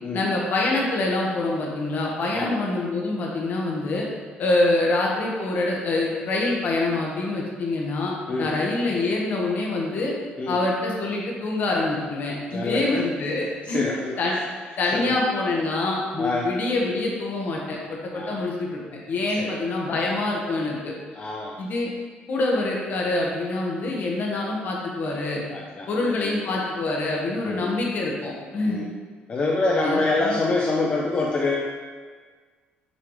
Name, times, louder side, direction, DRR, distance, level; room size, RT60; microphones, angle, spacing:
voice 1, 0.1-4.1 4.4-8.1 8.4-10.1 10.5-13.8 14.2-14.3 14.8-18.8 19.1-20.9 21.6-21.9 22.3-25.4 25.9-28.8 29.8-30.4, left 2 dB, 55° left, -2 dB, 1.4 m, -25 dB
voice 2, 12.5-13.0 13.7-14.2 14.9-15.1 16.2-16.5 18.1-18.5 19.4-19.6 21.1-21.6 25.5-26.4 27.4-27.7 28.7-28.9 29.3-31.6, left 3 dB, 40° left, -3 dB, 0.7 m, -26 dB
6.8 x 3.4 x 4.9 m, 1.5 s
cardioid pair, 105°, 4 cm